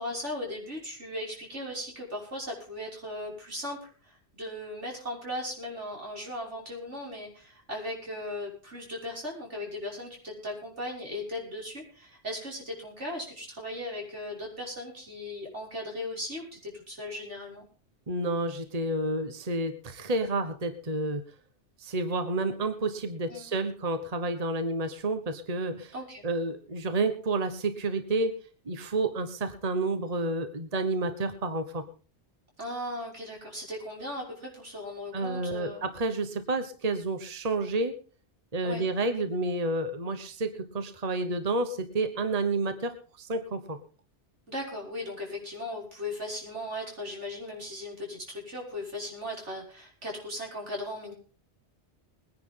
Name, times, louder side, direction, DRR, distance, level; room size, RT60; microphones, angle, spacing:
voice 1, 0.0-17.6 23.3-23.5 25.9-26.2 32.6-35.8 38.6-38.8 44.5-51.1, left 1 dB, 80° right, -2 dB, 6.6 m, -37 dB
voice 2, 18.1-21.2 21.8-25.9 26.2-28.4 28.6-31.8 35.1-37.9 38.5-43.8, right 2 dB, 35° right, 7 dB, 1.3 m, -30 dB
21.5 x 10.5 x 3.9 m, 0.39 s
omnidirectional pair, 1.2 m